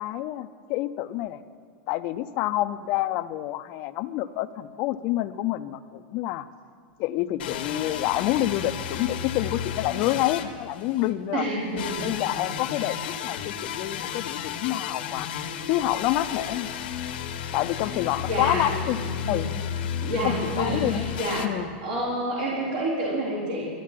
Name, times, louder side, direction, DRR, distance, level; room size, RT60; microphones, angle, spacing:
voice 1, 0.0-1.4 1.9-6.5 7.0-11.4 12.0-15.3 15.7-16.7 17.5-19.0 19.3-19.5 20.2-21.0 21.4-21.7, left 14 dB, 35° left, 11 dB, 0.4 m, -28 dB
sound 1, 7.4-11.1 11.8-21.5, left 8 dB, 75° left, 1.2 m, -33 dB
voice 2, 11.3-12.2 12.7-12.9 18.3-18.7 19.0-19.5 20.0-21.5 21.8-23.7, right 1 dB, 55° right, -6 dB, 3.8 m, -28 dB
12.5 x 9.5 x 7.5 m, 2.3 s
supercardioid pair, 180°, 5 cm